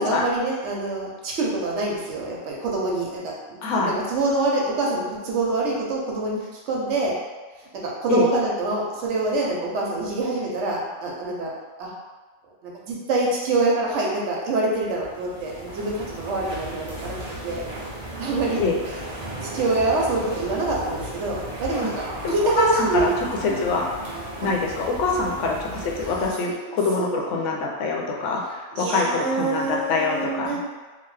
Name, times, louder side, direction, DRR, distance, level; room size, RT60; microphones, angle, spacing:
voice 1, 0.0-7.1 7.8-11.5 11.8-11.9 12.6-17.2 17.4-17.6 18.2-18.7 19.4-23.1 23.5-23.6 26.0-26.3 26.6-27.2 28.7-30.6, right 2 dB, 80° right, -3 dB, 1.0 m, -25 dB
voice 2, 3.6-4.0 8.1-8.3 18.6-18.8 21.8-21.9 22.2-23.9 24.4-30.6, left 3 dB, 90° left, 0 dB, 0.9 m, -25 dB
sound 1, 14.7-26.3, right 1 dB, 40° right, 0.7 m, -35 dB
2.9 x 2.1 x 3.1 m, 1.3 s
omnidirectional pair, 1.2 m